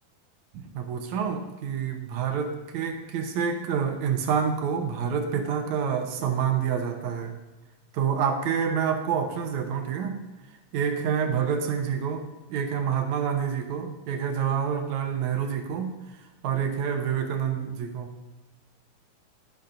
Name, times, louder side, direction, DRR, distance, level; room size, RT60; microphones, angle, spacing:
voice 1, 0.5-7.4 7.9-10.2 10.7-16.0 16.4-18.1, right 7 dB, 70° right, 5 dB, 2.1 m, -28 dB
12.0 x 10.5 x 2.6 m, 1.1 s
omnidirectional pair, 3.7 m